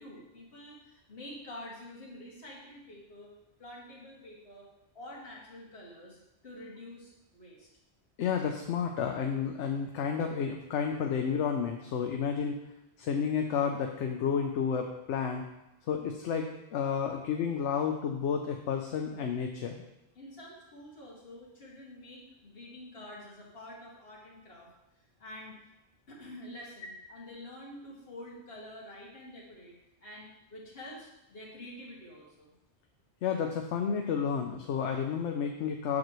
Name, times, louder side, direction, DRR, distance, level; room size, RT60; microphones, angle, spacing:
voice 1, 0.0-3.3 3.6-4.7 4.9-6.2 6.4-7.7 20.2-24.7 25.2-25.6 26.1-32.5, left 1 dB, 55° left, -5 dB, 2.1 m, -47 dB
voice 2, 8.2-12.6 13.0-15.4 15.9-19.8 33.2-36.0, left 7 dB, 85° left, 3 dB, 0.9 m, -31 dB
7.5 x 6.2 x 3.1 m, 0.90 s
omnidirectional pair, 1.2 m